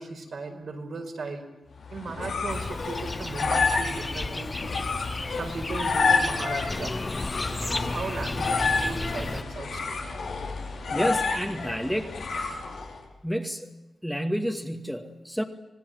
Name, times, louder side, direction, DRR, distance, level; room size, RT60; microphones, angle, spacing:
voice 1, 0.0-1.5 1.9-4.8 5.3-7.0 7.5-10.0, right 3 dB, 70° right, 2 dB, 5.0 m, -36 dB
sound 1, 1.8-13.0, left 4 dB, 90° left, 5.4 m, -29 dB
sound 2, 2.5-9.4, left 2 dB, 30° left, 1.0 m, -34 dB
voice 2, 10.9-12.1 13.2-13.7 14.0-15.4, equal, ahead, 3 dB, 2.2 m, -29 dB
26.0 x 18.0 x 9.6 m, 1.0 s
cardioid pair, 70°, 0 cm